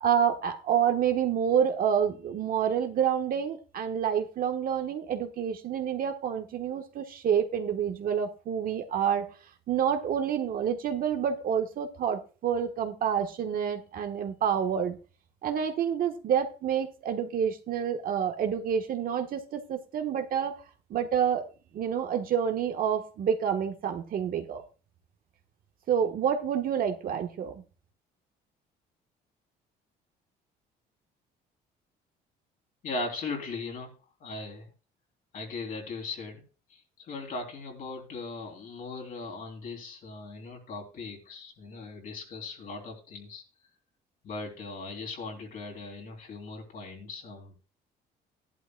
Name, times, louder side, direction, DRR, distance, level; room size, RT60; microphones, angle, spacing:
voice 1, 0.0-9.3 9.7-15.0 15.4-20.6 20.9-21.5 21.7-24.6 25.9-27.6, right 8 dB, 55° right, 6 dB, 1.3 m, -28 dB
voice 2, 32.8-33.9 34.2-34.7 35.3-36.4 36.7-43.4 44.2-47.5, left 3 dB, 55° left, 2 dB, 3.4 m, -39 dB
14.5 x 11.0 x 2.3 m, 0.35 s
cardioid pair, 110°, 17 cm